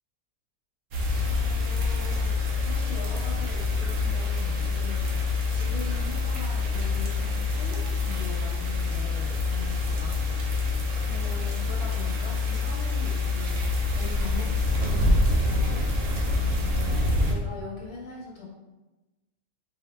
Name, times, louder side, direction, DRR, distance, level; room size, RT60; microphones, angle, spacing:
sound 1, 0.9-17.3, left 3 dB, 70° right, 1.2 m, -26 dB
voice 1, 1.3-10.2 10.6-14.5 14.8-16.3 16.6-18.5, left 3 dB, 45° left, -3 dB, 1.2 m, -42 dB
4.9 x 2.8 x 3.3 m, 1.1 s
omnidirectional pair, 1.6 m